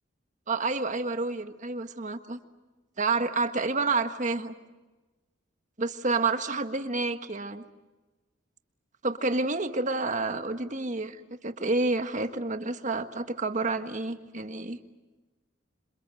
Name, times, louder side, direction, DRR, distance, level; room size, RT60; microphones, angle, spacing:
voice 1, 0.5-2.4 3.0-4.5 5.8-7.6 9.0-14.8, right 3 dB, 40° right, 8 dB, 1.5 m, -29 dB
28.0 x 27.0 x 7.7 m, 1.2 s
head